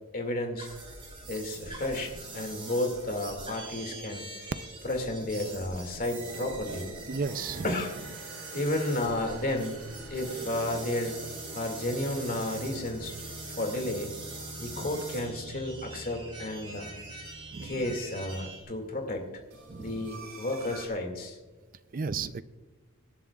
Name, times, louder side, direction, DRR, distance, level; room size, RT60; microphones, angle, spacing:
voice 1, 0.1-0.7 1.3-4.3 4.8-6.9 7.6-7.9 8.5-9.8 10.1-11.2 11.5-13.1 13.5-14.1 14.6-16.9 17.6-19.4 19.8-21.4, left 1 dB, 40° left, 4 dB, 2.2 m, -32 dB
sound 1, 0.6-18.6, right 3 dB, 25° right, 4.8 m, -44 dB
sound 2, 1.5-17.6 19.5-20.9, right 3 dB, 70° right, 3.4 m, -48 dB
voice 2, 7.1-7.7 14.7-14.9 17.5-17.9 19.7-20.1 21.9-22.4, right 4 dB, 40° right, 14 dB, 0.5 m, -34 dB
sound 3, 7.2-19.4, right 1 dB, 5° left, 3.5 m, -48 dB
25.0 x 11.5 x 2.4 m, 1.3 s
head